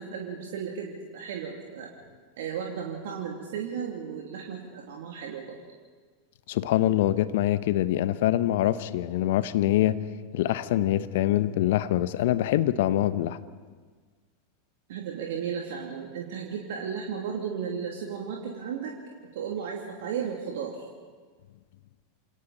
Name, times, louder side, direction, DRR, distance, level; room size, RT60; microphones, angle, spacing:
voice 1, 0.0-1.9 2.4-5.6 14.9-18.9 19.3-20.9, right 7 dB, 65° right, -1 dB, 2.8 m, -34 dB
voice 2, 6.5-10.0 10.3-13.4, left 13 dB, 60° left, 13 dB, 1.1 m, -24 dB
28.5 x 27.0 x 4.2 m, 1.5 s
figure-of-eight pair, 90°, 0 cm